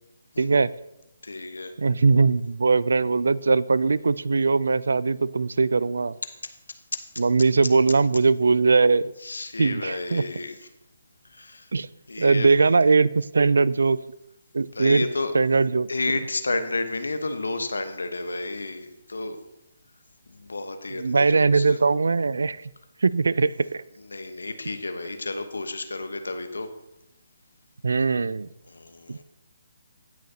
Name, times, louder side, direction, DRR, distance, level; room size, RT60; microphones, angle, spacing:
voice 1, 0.4-0.7 1.8-6.1 7.2-9.1 9.6-10.2 11.7-11.9 12.2-14.0 14.5-15.0 15.3-15.9 21.0-22.6 23.0-23.8 27.8-28.5 29.1-29.2, right 4 dB, 75° right, 20 dB, 0.3 m, -20 dB
voice 2, 1.2-1.7 6.4-7.0 9.2-10.6 11.3-11.7 12.1-12.5 14.7-15.3 15.9-19.4 20.3-21.8 24.0-26.7 28.7-29.2, left 2 dB, 80° left, 8 dB, 1.1 m, -31 dB
17.0 x 6.4 x 2.8 m, 0.91 s
figure-of-eight pair, 150°, 0 cm